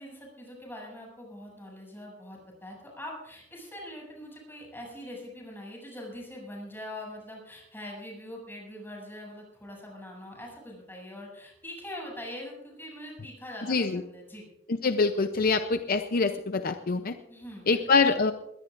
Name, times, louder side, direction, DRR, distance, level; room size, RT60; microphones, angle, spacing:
voice 1, 0.0-14.5 17.3-18.1, left 1 dB, 10° left, -2 dB, 7.3 m, -43 dB
voice 2, 13.7-14.0 14.8-17.1 17.7-18.3, left 4 dB, 50° left, 8 dB, 0.6 m, -25 dB
21.5 x 17.5 x 2.5 m, 0.90 s
head